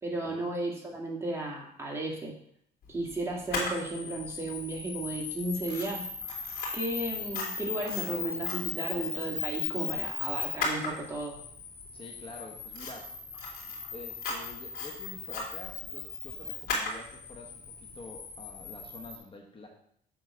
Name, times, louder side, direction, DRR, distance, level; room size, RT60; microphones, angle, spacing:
voice 1, 0.0-2.3 2.9-6.0 6.7-11.4, right 2 dB, 15° right, -2 dB, 2.1 m, -34 dB
Camera, 3.5-19.2, left 4 dB, 70° left, 3.1 m, -36 dB
voice 2, 11.9-13.1 13.9-19.7, left 3 dB, 30° left, 1 dB, 1.2 m, -47 dB
7.7 x 3.8 x 6.1 m, 0.66 s
cardioid pair, 110°, 17 cm